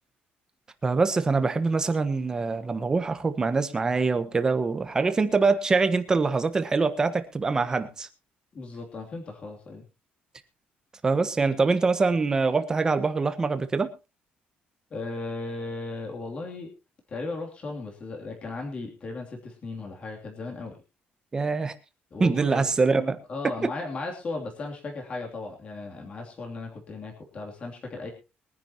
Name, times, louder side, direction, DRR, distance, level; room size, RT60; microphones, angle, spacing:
voice 1, 0.8-8.1 11.0-13.9 21.3-21.7 22.2-23.2 23.6-23.7, right 4 dB, 20° right, 1.3 m, -24 dB
voice 2, 8.5-9.8 14.9-16.7 17.1-20.7 22.1-22.7 23.3-28.1, left 3 dB, 30° left, 2.9 m, -36 dB
22.5 x 10.5 x 3.0 m
cardioid pair, 170°, 4 cm